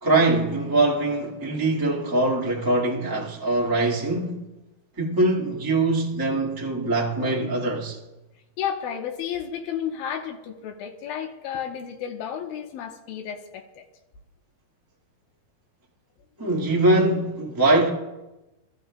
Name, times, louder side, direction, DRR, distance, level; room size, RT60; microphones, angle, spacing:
voice 1, 0.0-4.4 5.0-8.0 16.4-17.9, right 2 dB, 20° right, 0.5 m, -22 dB
voice 2, 8.6-13.8, left 8 dB, 85° left, 2.8 m, -32 dB
27.0 x 14.0 x 2.3 m
omnidirectional pair, 4.1 m